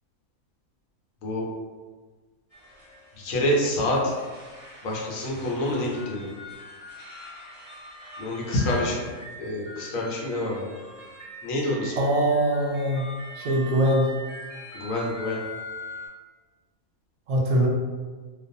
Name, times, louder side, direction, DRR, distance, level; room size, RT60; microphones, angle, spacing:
sound 1, 2.5-16.1, left 1 dB, 30° left, 0.8 m, -42 dB
voice 1, 3.2-4.0 4.8-6.3 8.2-9.0 9.4-10.7 11.4-12.1 14.7-15.4, left 1 dB, 65° left, -3 dB, 1.0 m, -27 dB
voice 2, 12.0-13.1 13.3-14.1 17.3-17.7, right 1 dB, 70° right, -1 dB, 1.0 m, -22 dB
2.4 x 2.3 x 2.6 m, 1.4 s
omnidirectional pair, 1.6 m